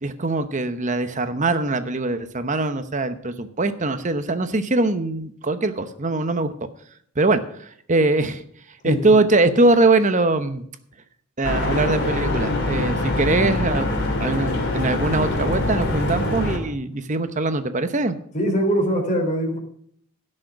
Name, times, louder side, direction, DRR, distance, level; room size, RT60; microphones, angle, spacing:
voice 1, 0.0-6.5 7.2-8.4 8.8-10.6 11.4-13.9 14.2-18.2, right 2 dB, 35° right, 10 dB, 0.9 m, -22 dB
sound 1, 11.4-16.6, left 2 dB, 50° left, 3.1 m, -24 dB
voice 2, 18.3-19.6, equal, 35° left, 2 dB, 3.6 m, -22 dB
16.0 x 6.6 x 6.0 m, 0.64 s
head